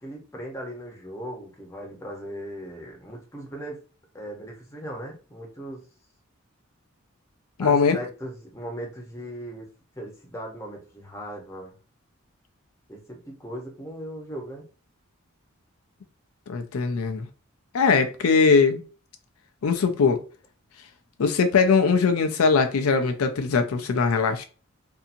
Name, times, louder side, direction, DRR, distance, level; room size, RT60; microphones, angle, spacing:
voice 1, 0.0-3.8 4.1-5.8 7.6-9.7 10.0-11.7 12.9-14.6, equal, 15° left, 0.8 m, -38 dB
voice 2, 7.6-8.0 16.5-17.3 17.7-18.8 19.6-20.2 21.2-24.4, left 5 dB, 85° left, 0.4 m, -21 dB
2.7 x 2.5 x 2.5 m
head